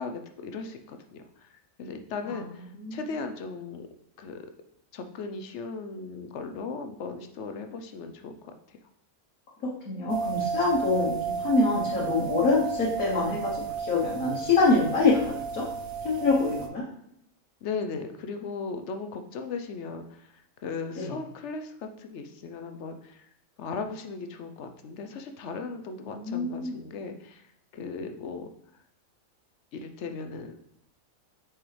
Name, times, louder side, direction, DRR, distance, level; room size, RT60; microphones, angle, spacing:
voice 1, 0.0-1.5 1.8-3.9 4.2-4.4 4.9-8.3 8.7-8.8 17.6-23.3 23.6-27.4 27.7-28.5 29.7-30.5, left 4 dB, 65° left, 6 dB, 0.9 m, -37 dB
voice 2, 2.7-3.0 9.6-15.6 16.0-16.8 21.0-21.1 26.1-26.8, left 3 dB, 85° left, -6 dB, 1.7 m, -25 dB
sound 1, 10.1-16.7, right 6 dB, 55° right, 0.8 m, -33 dB
6.0 x 4.8 x 3.3 m, 0.76 s
omnidirectional pair, 1.4 m